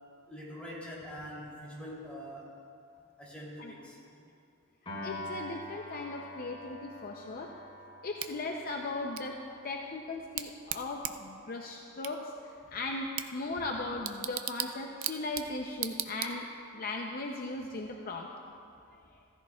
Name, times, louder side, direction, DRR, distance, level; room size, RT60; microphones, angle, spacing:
voice 1, 0.3-2.6 3.2-4.0, equal, 5° left, -6 dB, 3.0 m, -44 dB
Piano, 4.9-11.2, left 1 dB, 30° left, 3.2 m, -46 dB
voice 2, 5.0-7.6 8.0-9.4 9.6-12.3 12.7-16.5 16.7-18.3, left 2 dB, 45° left, 1 dB, 0.6 m, -37 dB
Bicycle / Tick, 8.2-16.8, right 12 dB, 70° right, 0.5 m, -40 dB
15.5 x 14.5 x 2.3 m, 2.5 s
head